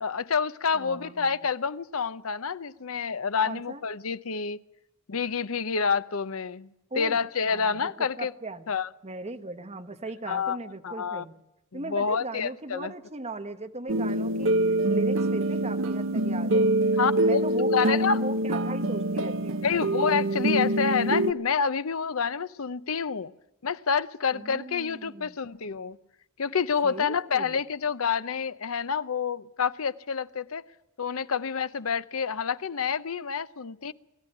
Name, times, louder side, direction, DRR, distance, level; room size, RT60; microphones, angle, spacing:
voice 1, 0.0-4.6 5.1-6.7 7.0-8.3 8.7-8.9 10.3-10.6 10.8-11.2 11.7-12.9 17.0-18.2 19.6-23.3 23.6-26.0 26.4-30.6 31.0-33.9, left 6 dB, 75° left, 0.7 m, -28 dB
voice 2, 0.7-1.4 3.4-3.8 6.9-7.2 7.5-8.7 9.0-11.4 11.7-16.7 17.2-19.6 24.3-25.4 26.8-27.5, right 2 dB, 30° right, 1.4 m, -38 dB
sound 1, 13.9-21.3, right 1 dB, 65° right, 0.9 m, -25 dB
22.0 x 14.5 x 10.0 m
head